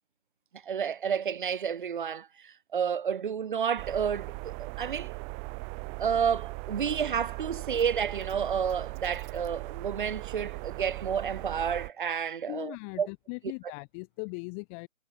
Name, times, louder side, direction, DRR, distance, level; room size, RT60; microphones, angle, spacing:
voice 1, 0.7-5.1 6.0-13.1, right 7 dB, 35° right, 6.0 m, -30 dB
sound 1, 3.8-11.9, right 34 dB, 15° right, 7.7 m, -39 dB
voice 2, 12.5-14.9, left 40 dB or more, 10° left, 1.9 m, -39 dB
figure-of-eight pair, 150°, 43 cm